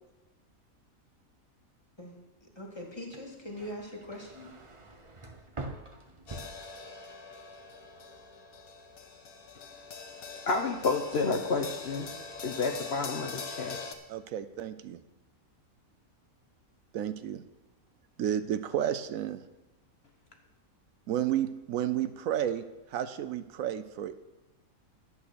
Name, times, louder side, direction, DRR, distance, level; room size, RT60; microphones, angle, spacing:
voice 1, 2.0-4.5, left 1 dB, 20° left, -1 dB, 2.3 m, -42 dB
sound 1, 3.0-7.3 7.6-8.2, right 2 dB, 25° right, 0.9 m, -45 dB
sound 2, 6.3-13.9, left 5 dB, 80° left, 1.6 m, -43 dB
voice 2, 10.5-12.1 12.4-13.8, left 4 dB, 50° left, 4 dB, 1.1 m, -30 dB
voice 3, 14.1-15.0 16.9-17.4 18.2-19.4 21.1-22.6 22.9-24.2, right 10 dB, 75° right, 12 dB, 1.0 m, -31 dB
11.0 x 8.5 x 6.3 m, 1.0 s
omnidirectional pair, 1.5 m